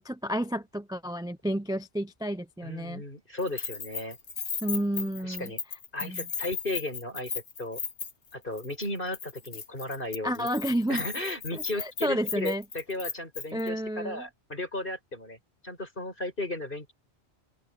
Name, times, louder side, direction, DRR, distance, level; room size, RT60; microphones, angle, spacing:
voice 1, 0.0-3.0 4.6-5.5 6.0-6.2 10.2-11.1 11.5-12.6 13.5-14.2, equal, 5° right, 0.6 m, -31 dB
voice 2, 2.6-4.2 5.2-5.6 5.9-7.3 7.6-7.8 8.3-10.5 10.9-15.4 15.6-16.9, left 1 dB, 50° left, 7.3 m, -35 dB
Keys jangling, 3.4-8.3 8.6-8.9 9.1-13.7, left 6 dB, 75° left, 1.8 m, -36 dB
open air
omnidirectional pair, 1.2 m